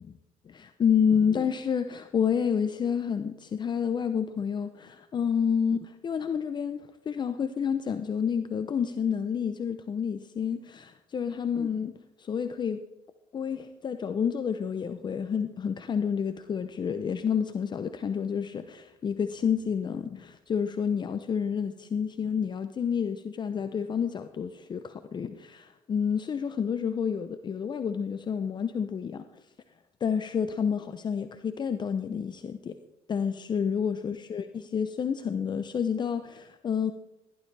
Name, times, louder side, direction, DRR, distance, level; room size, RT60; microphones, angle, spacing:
voice 1, 0.5-11.9 12.2-12.8 13.3-29.2 30.0-32.8 33.1-36.9, left 7 dB, 35° left, 10 dB, 0.7 m, -29 dB
15.5 x 12.0 x 3.4 m, 1.0 s
supercardioid pair, 90°, 13 cm